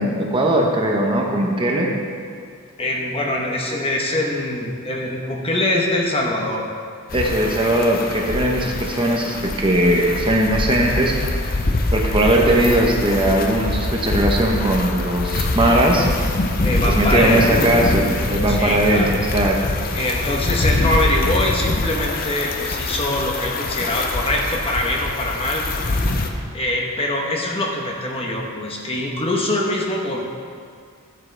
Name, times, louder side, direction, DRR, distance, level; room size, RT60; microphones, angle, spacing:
voice 1, 0.0-1.9 7.1-11.2 11.9-16.1 16.8-19.6, right 1 dB, 25° right, 0 dB, 0.9 m, -19 dB
voice 2, 2.8-6.6 16.6-17.6 18.5-19.2 19.9-25.7 26.5-30.2, left 1 dB, 25° left, 0 dB, 1.0 m, -23 dB
sound 1, 7.1-26.3, left 2 dB, 40° left, 0.7 m, -24 dB
13.5 x 7.4 x 3.4 m, 2.2 s
head